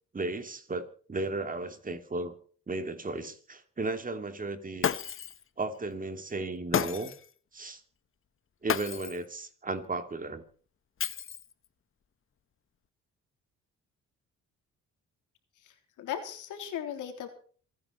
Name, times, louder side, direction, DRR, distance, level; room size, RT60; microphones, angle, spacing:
voice 1, 0.1-2.3 2.7-4.9 5.6-7.1 7.5-7.8 8.6-10.4, right 2 dB, 25° right, 8 dB, 2.7 m, -35 dB
Shatter, 4.8-5.4 6.7-7.3 8.7-9.3 11.0-11.7, left 8 dB, 45° left, 1.1 m, -31 dB
voice 2, 16.0-17.3, left 9 dB, 85° left, 6 dB, 3.6 m, -36 dB
27.0 x 10.0 x 4.3 m, 0.43 s
cardioid pair, 90°, 30 cm